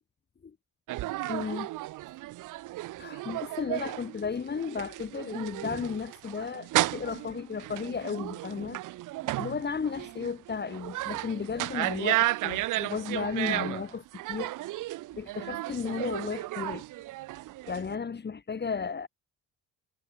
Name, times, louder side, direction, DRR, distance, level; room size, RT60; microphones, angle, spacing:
sound 1, 0.9-18.0, right 17 dB, 85° right, 1.1 m, -33 dB
voice 1, 1.3-1.7 3.0-8.8 9.4-14.5 15.2-16.8 17.7-19.1, left 5 dB, 35° left, 2.1 m, -34 dB
cardioid pair, 90°, 30 cm